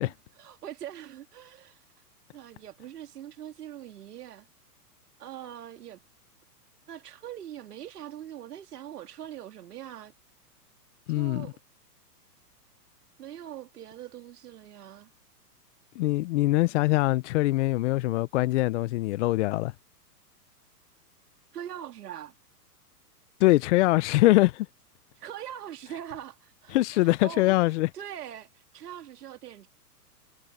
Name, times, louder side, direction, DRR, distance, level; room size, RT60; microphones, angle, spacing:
voice 1, 0.0-1.8 2.3-4.5 5.2-6.0 6.9-10.1 11.1-11.6 13.2-15.1 21.5-22.3 25.2-27.5 27.9-29.7, right 10 dB, 70° right, 2.8 m, -42 dB
voice 2, 11.1-11.5 16.0-19.7 23.4-24.7 26.7-27.9, left 18 dB, 45° left, 0.9 m, -23 dB
hypercardioid pair, 125°, 48 cm